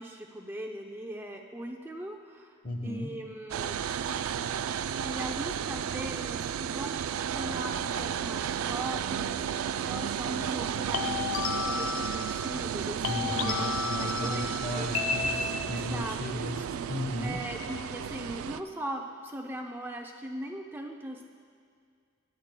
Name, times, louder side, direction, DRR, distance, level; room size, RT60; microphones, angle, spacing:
voice 1, 0.0-3.8 5.0-7.0 7.3-14.9 15.7-16.2 17.2-21.3, right 1 dB, 10° right, 2 dB, 0.4 m, -39 dB
voice 2, 2.6-3.1 13.0-17.4, left 1 dB, 40° left, 3 dB, 1.0 m, -36 dB
sound 1, 3.5-18.6, right 8 dB, 90° right, 0.3 m, -33 dB
sound 2, 6.0-6.3 10.9-12.8 13.0-15.9, left 5 dB, 80° left, 0.6 m, -33 dB
19.5 x 10.0 x 2.2 m, 2.1 s
head